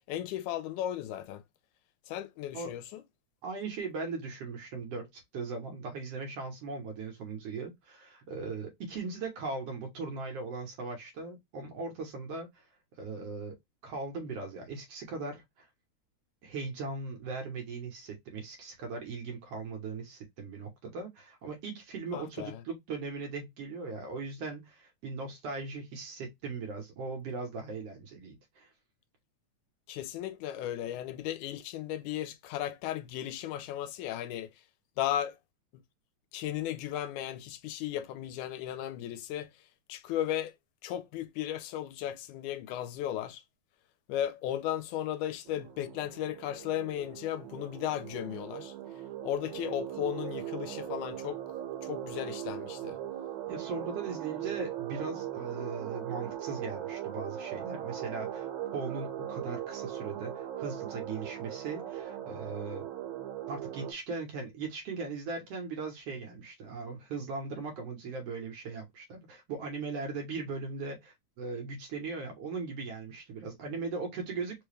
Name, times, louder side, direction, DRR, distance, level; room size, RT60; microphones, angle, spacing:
voice 1, 0.1-1.4 2.1-3.0 22.1-22.6 29.9-34.5 35.0-35.4 36.3-39.5 39.9-40.5 40.8-43.4 44.1-48.7 49.2-51.4 51.8-53.0, left 11 dB, 90° left, 2.1 m, -35 dB
voice 2, 3.4-12.5 13.0-13.6 13.8-15.7 16.4-28.7 53.5-58.5 58.7-62.9 63.5-74.7, right 4 dB, 65° right, 1.9 m, -39 dB
sound 1, 45.5-63.9, right 11 dB, 80° right, 2.1 m, -39 dB
4.8 x 2.3 x 3.2 m
omnidirectional pair, 3.4 m